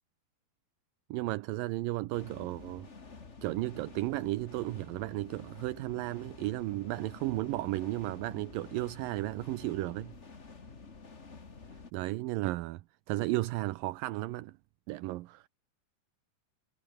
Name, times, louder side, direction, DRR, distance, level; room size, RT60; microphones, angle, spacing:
voice 1, 1.1-2.9 3.4-10.1 11.9-14.6 14.9-15.5, right 18 dB, 80° right, 2.4 m, -34 dB
sound 1, 2.1-11.9, left 4 dB, 25° left, 1.7 m, -50 dB
omnidirectional pair, 4.1 m